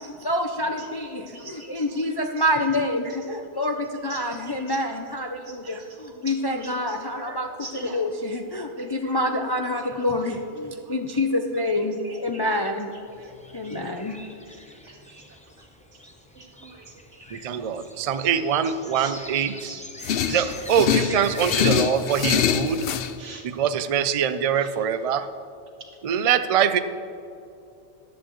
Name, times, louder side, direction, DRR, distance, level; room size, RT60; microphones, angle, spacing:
voice 1, 0.2-12.9 13.5-14.2, left 1 dB, 40° left, 4 dB, 0.3 m, -27 dB
voice 2, 1.3-2.5 4.0-4.8 5.3-8.0 8.8-9.2 9.8-9.9 10.2-11.2 11.8-12.5 13.2-13.7 14.5-16.0 16.3-16.9 17.1-17.5 19.0-19.1 19.6-19.8 20.1-20.5 20.9-21.2 21.7-21.8 22.1-22.2 23.2-23.4 24.6-24.7, right 3 dB, 85° right, 1 dB, 1.9 m, -45 dB
sound 1, 13.1-21.9, left 1 dB, 5° left, 0.7 m, -42 dB
voice 3, 17.3-19.8 20.3-22.8 23.4-25.3 26.0-26.8, right 8 dB, 60° right, 11 dB, 0.3 m, -23 dB
sound 2, 20.0-23.1, left 9 dB, 65° left, 0.7 m, -24 dB
14.0 x 10.5 x 3.1 m, 2.7 s
omnidirectional pair, 1.2 m